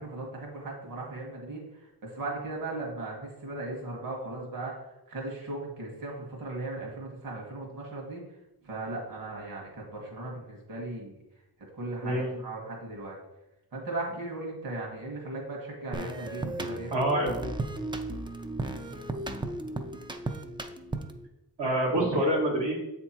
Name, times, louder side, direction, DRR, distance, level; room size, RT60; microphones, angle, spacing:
voice 1, 0.0-4.8 5.1-8.2 8.6-11.1 11.7-13.2 13.7-16.9, right 2 dB, 50° right, -2 dB, 1.8 m, -37 dB
voice 2, 12.0-12.4 16.9-17.5 21.6-22.8, right 1 dB, 70° right, -4 dB, 1.6 m, -26 dB
sound 1, 15.9-21.3, right 2 dB, 15° right, 0.3 m, -35 dB
7.8 x 3.6 x 4.4 m, 0.90 s
wide cardioid pair, 145°, 43 cm